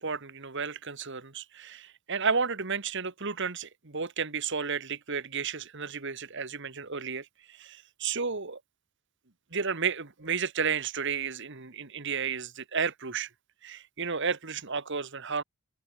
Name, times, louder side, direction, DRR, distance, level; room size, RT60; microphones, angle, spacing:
voice 1, 0.0-8.6 9.5-13.3 13.6-15.4, right 5 dB, 60° right, 1.9 m, -32 dB
head